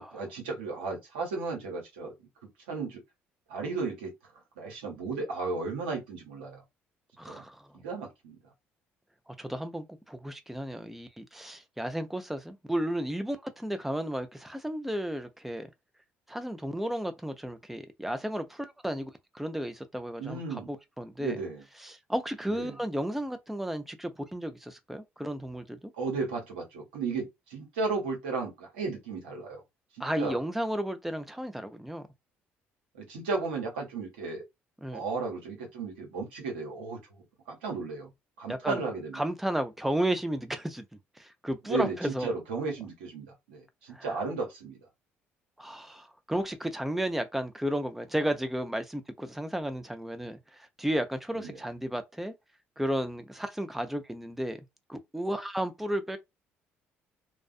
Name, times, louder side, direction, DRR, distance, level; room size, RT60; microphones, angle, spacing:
voice 1, 0.0-2.1 2.7-3.0 3.5-4.1 4.6-6.6 7.3-7.4 7.7-8.4 20.2-20.7 21.2-21.6 22.5-22.8 25.9-29.6 29.9-30.4 32.9-34.4 34.9-38.1 38.4-39.2 41.7-41.9 42.2-44.8 51.4-51.6, right 4 dB, 90° right, 1.0 m, -34 dB
voice 2, 7.2-7.7 9.3-15.7 16.3-21.4 21.8-25.9 30.0-32.0 34.8-35.0 38.5-38.8 39.1-40.8 41.2-42.3 43.9-44.1 45.6-52.3 52.8-54.6 54.9-56.2, right 1 dB, 5° right, 0.5 m, -33 dB
2.4 x 2.2 x 2.4 m
hypercardioid pair, 55°, 6 cm